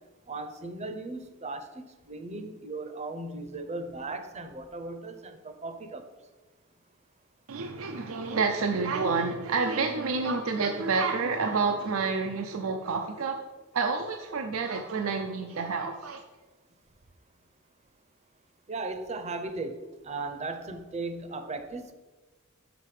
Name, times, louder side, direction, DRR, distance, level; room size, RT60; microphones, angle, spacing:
voice 1, 0.3-6.0 18.7-21.9, right 3 dB, 30° right, 8 dB, 0.7 m, -37 dB
voice 2, 7.5-13.4 13.7-16.2, right 4 dB, 80° right, 4 dB, 0.5 m, -29 dB
6.5 x 6.0 x 4.9 m, 1.2 s
head